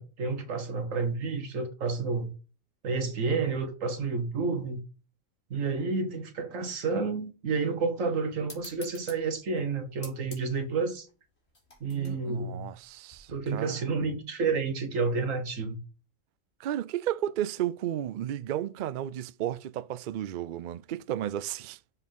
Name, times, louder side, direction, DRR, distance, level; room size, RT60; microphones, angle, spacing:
voice 1, 0.0-2.3 2.8-4.8 5.5-11.1 11.8-12.7 13.3-15.8, right 4 dB, 90° right, 1.7 m, -30 dB
sound 1, 8.4-13.5, left 2 dB, 55° left, 3.0 m, -51 dB
voice 2, 11.9-13.8 16.6-21.8, right 12 dB, 65° right, 0.4 m, -33 dB
7.2 x 4.1 x 5.4 m
omnidirectional pair, 1.3 m